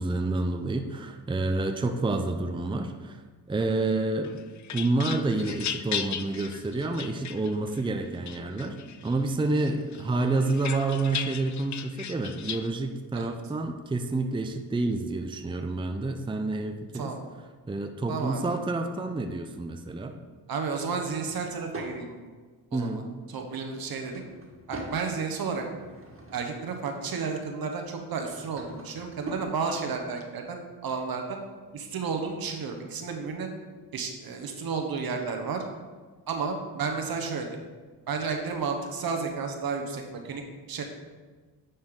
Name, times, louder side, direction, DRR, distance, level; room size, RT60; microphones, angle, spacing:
voice 1, 0.0-3.2 3.5-4.4 4.7-8.8 9.0-17.1 17.7-20.2 22.7-23.1, right 2 dB, 15° right, 5 dB, 0.6 m, -29 dB
sound 1, 4.2-7.8 8.3-9.2 9.6-12.7, left 8 dB, 45° left, 0.6 m, -36 dB
voice 2, 18.1-18.6 20.5-22.2 22.7-23.0 23.3-24.2 24.7-25.6 26.3-31.4 31.7-33.5 33.9-35.6 36.3-37.5 38.1-40.4 40.7-40.8, right 5 dB, 65° right, 4 dB, 1.2 m, -32 dB
Drawer open or close / Wood, 21.0-22.0 23.7-25.0 25.5-26.7 28.0-29.5, right 1 dB, 35° right, 1.8 m, -43 dB
9.9 x 4.4 x 3.8 m, 1.4 s
cardioid pair, 70°, 39 cm